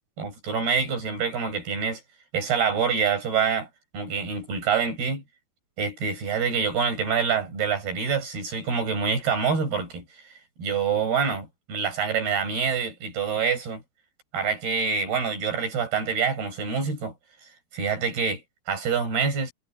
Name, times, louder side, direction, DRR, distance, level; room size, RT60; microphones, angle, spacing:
voice 1, 0.2-2.0 2.3-3.7 3.9-5.2 5.8-10.0 10.6-13.8 14.3-17.1 17.7-19.5, right 6 dB, 80° right, 8.7 m, -26 dB
omnidirectional pair, 4.5 m